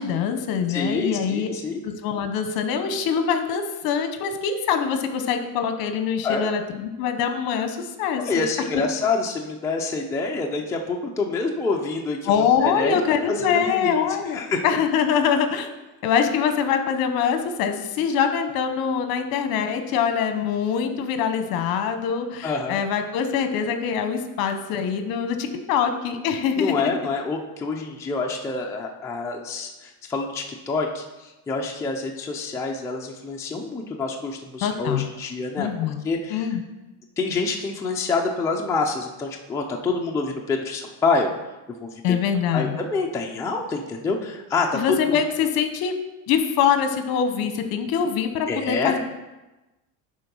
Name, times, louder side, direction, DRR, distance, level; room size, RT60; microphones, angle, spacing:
voice 1, 0.0-1.5 1.8-8.5 8.7-8.8 12.3-15.7 16.0-26.9 34.6-35.1 35.6-36.0 36.3-36.6 42.0-42.8 44.7-45.9 46.3-49.0, left 7 dB, 55° left, 8 dB, 1.0 m, -24 dB
voice 2, 0.7-1.8 6.2-6.5 8.2-13.0 13.3-13.9 14.3-14.6 22.4-22.8 26.6-36.6 37.2-41.3 41.8-42.2 42.5-44.8 45.1-45.2 48.5-49.0, left 4 dB, 5° left, 0 dB, 0.5 m, -27 dB
10.5 x 3.9 x 5.3 m, 1.1 s
cardioid pair, 145°, 43 cm